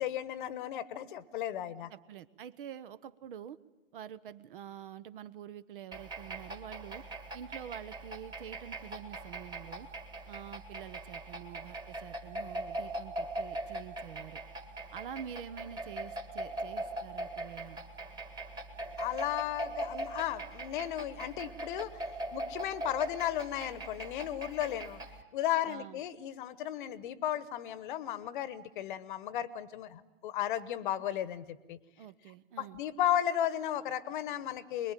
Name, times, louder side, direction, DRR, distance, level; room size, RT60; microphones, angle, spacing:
voice 1, 0.0-1.9 19.0-22.0 22.3-25.0 25.3-31.8 32.6-34.9, left 11 dB, 45° left, 18 dB, 1.2 m, -34 dB
voice 2, 1.9-3.6 3.9-7.0 7.3-9.9 10.3-14.4 14.9-17.8 25.6-26.0 32.0-32.8, right 9 dB, 45° right, 17 dB, 1.0 m, -47 dB
sound 1, 5.9-25.2, right 1 dB, 10° right, 1.8 m, -41 dB
23.5 x 21.5 x 9.1 m, 1.1 s
hypercardioid pair, 125°, 36 cm